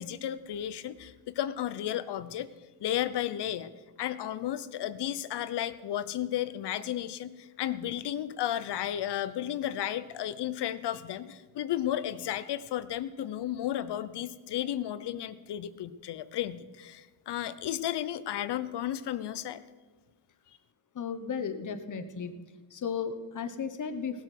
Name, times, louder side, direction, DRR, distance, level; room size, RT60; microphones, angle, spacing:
voice 1, 0.0-2.5 2.8-3.7 4.0-19.6, left 11 dB, 60° left, 14 dB, 0.8 m, -33 dB
voice 2, 20.9-22.3 22.7-24.2, left 6 dB, 40° left, 9 dB, 1.2 m, -35 dB
18.0 x 8.2 x 6.0 m, 1.3 s
cardioid pair, 110°, 46 cm